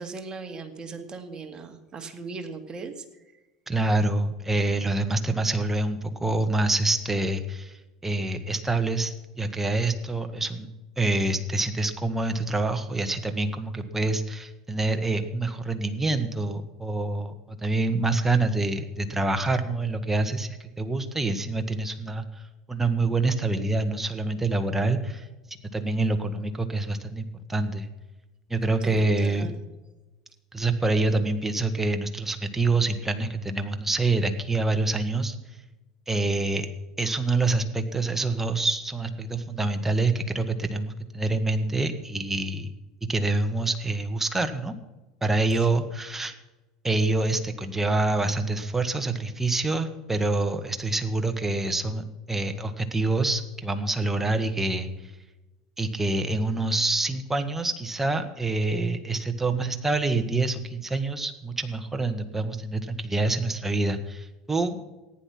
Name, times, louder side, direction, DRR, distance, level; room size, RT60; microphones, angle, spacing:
voice 1, 0.0-3.0 28.8-29.6 45.5-45.7, right 4 dB, 30° right, 5 dB, 2.2 m, -38 dB
voice 2, 3.7-7.7 8.0-10.7 11.0-25.3 25.7-27.9 28.5-29.5 30.5-35.3 36.1-36.7 37.0-42.7 43.0-44.7 45.2-46.3 46.8-54.9 55.8-64.8, right 2 dB, 10° right, 7 dB, 1.7 m, -26 dB
14.5 x 10.5 x 6.0 m, 1.1 s
hypercardioid pair, 85°, 3 cm